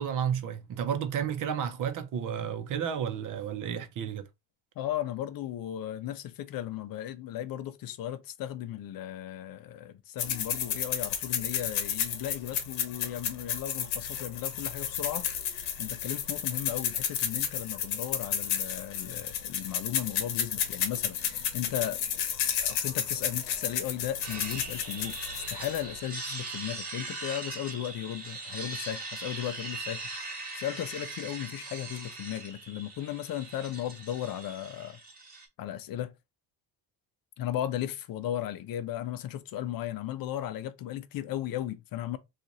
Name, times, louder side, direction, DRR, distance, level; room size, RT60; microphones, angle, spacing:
voice 1, 0.0-4.2, right 8 dB, 55° right, 0.7 m, -32 dB
voice 2, 4.8-22.0 22.6-25.2 25.5-35.0 35.6-36.1 37.4-42.2, left 12 dB, 60° left, 0.6 m, -36 dB
sound 1, 10.2-26.0, left 8 dB, 85° left, 0.9 m, -32 dB
sound 2, 24.2-35.5, right 3 dB, 25° right, 1.3 m, -40 dB
2.9 x 2.5 x 3.8 m
cardioid pair, 115°, 38 cm